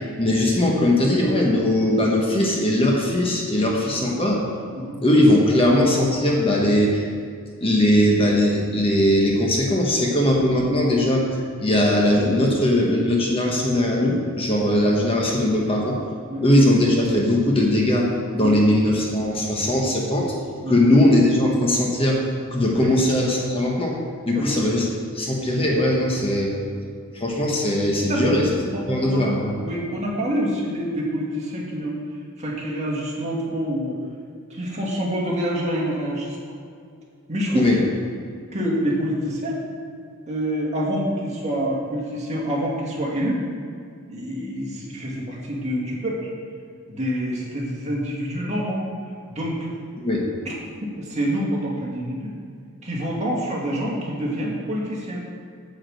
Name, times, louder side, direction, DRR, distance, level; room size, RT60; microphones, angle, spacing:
voice 1, 0.2-4.4 5.0-7.0 7.6-16.0 16.4-18.1 18.3-20.3 20.7-22.2 22.5-24.0 24.3-26.5 27.1-28.5 28.9-29.5 37.5-37.8 50.0-50.2, left 1 dB, 25° left, -2 dB, 1.2 m, -20 dB
voice 2, 28.7-29.3 29.6-31.9 32.4-34.0 34.5-36.4 37.3-37.7 38.5-39.6 40.3-43.4 44.1-46.3 46.9-48.8 49.3-49.7 51.0-52.3 52.8-55.2, equal, 35° right, -4 dB, 2.0 m, -26 dB
9.5 x 4.8 x 7.8 m, 2.2 s
head